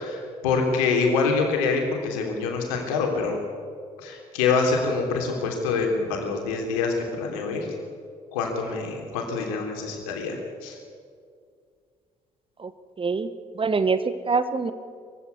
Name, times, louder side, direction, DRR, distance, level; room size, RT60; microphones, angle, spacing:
voice 1, 0.0-3.4 4.0-7.7 8.3-10.8, left 4 dB, 70° left, 2 dB, 3.3 m, -25 dB
voice 2, 13.0-14.7, right 4 dB, 30° right, 12 dB, 1.3 m, -25 dB
22.0 x 15.5 x 9.7 m, 2.2 s
figure-of-eight pair, 45°, 19 cm